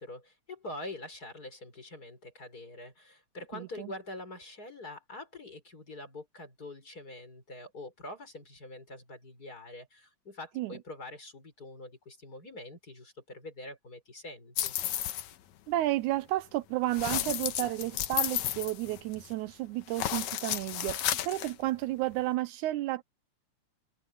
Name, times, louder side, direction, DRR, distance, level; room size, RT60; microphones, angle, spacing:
voice 1, 0.0-14.8, left 2 dB, 30° left, 5.5 m, -45 dB
voice 2, 3.5-3.9 10.6-10.7 15.7-23.0, right 16 dB, 80° right, 2.0 m, -32 dB
sound 1, 14.6-15.3 16.9-19.3 19.9-21.5, left 12 dB, 70° left, 2.3 m, -32 dB
omnidirectional pair, 3.5 m